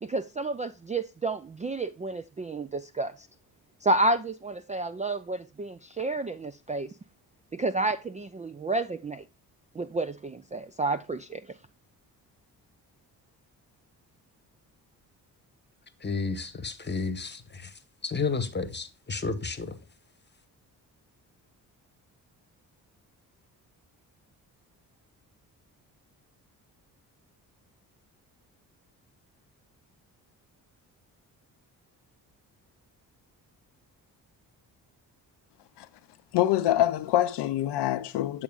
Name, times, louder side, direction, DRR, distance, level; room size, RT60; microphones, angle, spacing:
voice 1, 0.0-3.1 3.8-6.9 7.5-9.2 9.7-11.4, right 2 dB, 15° right, 0.4 m, -30 dB
voice 2, 16.0-17.7 18.0-19.8, left 4 dB, 20° left, 1.1 m, -31 dB
voice 3, 36.3-38.4, left 13 dB, 60° left, 0.6 m, -25 dB
8.6 x 6.9 x 2.4 m
hypercardioid pair, 40°, 48 cm